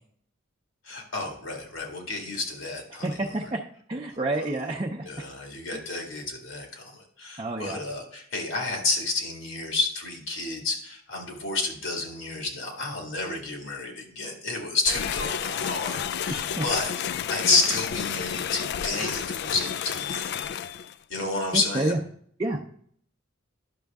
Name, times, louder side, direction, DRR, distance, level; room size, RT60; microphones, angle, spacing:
voice 1, 0.8-3.3 5.0-16.9 17.3-20.2 21.1-22.0, left 3 dB, 85° left, 2 dB, 2.0 m, -30 dB
voice 2, 2.9-3.6 3.9-5.1 5.7-5.8 7.4-7.8 16.3-16.7 21.5-22.0 22.4-22.6, right 2 dB, 25° right, -1 dB, 0.6 m, -29 dB
sound 1, 14.9-20.9, left 8 dB, 55° left, 0.3 m, -31 dB
11.0 x 6.4 x 3.5 m, 0.62 s
head